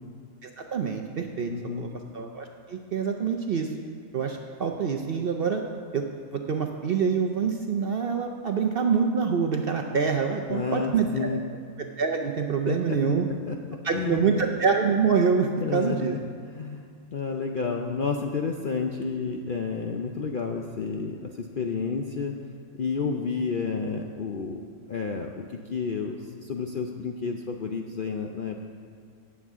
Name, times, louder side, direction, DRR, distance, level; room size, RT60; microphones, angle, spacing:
voice 1, 0.4-1.5 1.8-1.9 2.1-3.7 4.1-5.6 5.9-6.0 6.3-11.4 12.0-13.3 13.8-16.1, right 6 dB, 55° right, 4 dB, 0.7 m, -26 dB
voice 2, 1.5-1.9 10.5-11.4 12.7-13.0 13.5-13.6 13.9-14.3 15.6-16.0 16.5-16.8 17.1-22.3 22.8-24.6 24.9-25.3 25.7-28.7, left 5 dB, 55° left, 2 dB, 0.6 m, -30 dB
18.0 x 7.3 x 3.6 m, 2.2 s
omnidirectional pair, 1.5 m